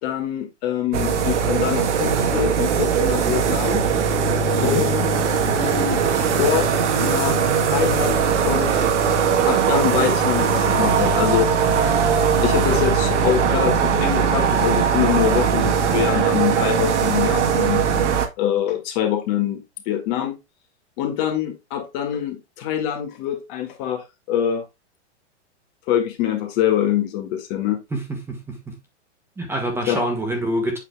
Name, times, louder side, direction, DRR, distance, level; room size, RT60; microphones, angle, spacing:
voice 1, 0.0-3.8 4.6-5.0 5.6-6.7 7.0-8.7 9.5-11.5 12.4-20.4 21.0-24.6 25.9-27.8 29.9-30.0, left 10 dB, 40° left, 2.0 m, -24 dB
sound 1, 0.9-18.3, right 6 dB, 75° right, 1.8 m, -20 dB
voice 2, 27.9-28.8 29.4-30.8, right 1 dB, 5° right, 1.7 m, -26 dB
8.1 x 5.9 x 2.3 m
hypercardioid pair, 135°, 36 cm